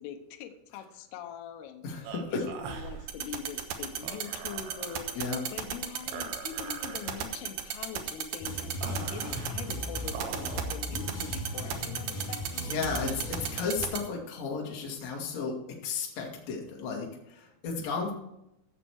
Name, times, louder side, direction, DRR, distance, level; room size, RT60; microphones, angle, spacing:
voice 1, 0.0-12.4, left 8 dB, 75° left, 5 dB, 2.4 m, -43 dB
voice 2, 1.8-2.4 5.1-5.4 12.6-15.6 15.8-18.1, left 5 dB, 45° left, -1 dB, 2.4 m, -34 dB
sound 1, 2.0-10.6, right 6 dB, 70° right, 3.1 m, -43 dB
sound 2, 3.1-14.0, right 10 dB, 90° right, 2.1 m, -32 dB
sound 3, 8.4-13.9, left 1 dB, 30° left, 1.7 m, -37 dB
16.0 x 6.8 x 4.7 m, 0.85 s
omnidirectional pair, 5.9 m